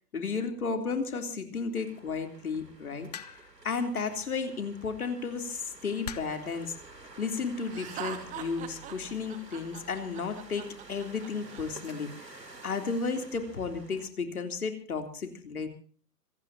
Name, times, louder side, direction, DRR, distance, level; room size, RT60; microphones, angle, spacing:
voice 1, 0.1-3.1 3.6-6.7 7.2-15.7, left 5 dB, 60° left, 6 dB, 3.6 m, -33 dB
sound 1, 1.7-14.1, right 2 dB, 90° right, 3.3 m, -51 dB
sound 2, 3.1-3.6 4.9-5.1 6.0-6.5 7.5-7.8, left 8 dB, 25° left, 0.6 m, -42 dB
Laughter, 7.7-11.6, right 9 dB, 15° right, 2.5 m, -42 dB
26.5 x 17.5 x 2.8 m, 0.42 s
figure-of-eight pair, 135°, 48 cm